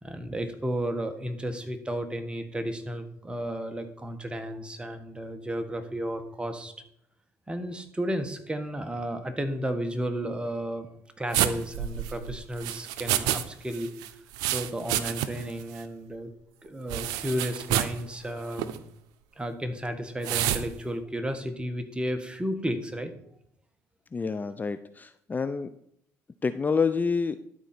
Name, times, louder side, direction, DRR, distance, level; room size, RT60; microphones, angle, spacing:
voice 1, 0.0-6.7 7.5-10.9 11.2-13.9 14.5-16.3 16.6-18.8 19.4-23.1, equal, 15° right, 7 dB, 1.5 m, -33 dB
sound 1, 11.3-13.4 13.7-15.5 15.8-15.9 16.9-18.0 18.5-18.8 20.2-20.6, right 12 dB, 85° right, 0.6 m, -28 dB
voice 2, 24.1-25.7 26.4-27.4, left 5 dB, 25° left, 11 dB, 0.5 m, -28 dB
12.0 x 4.1 x 5.9 m, 0.72 s
supercardioid pair, 70°, 6 cm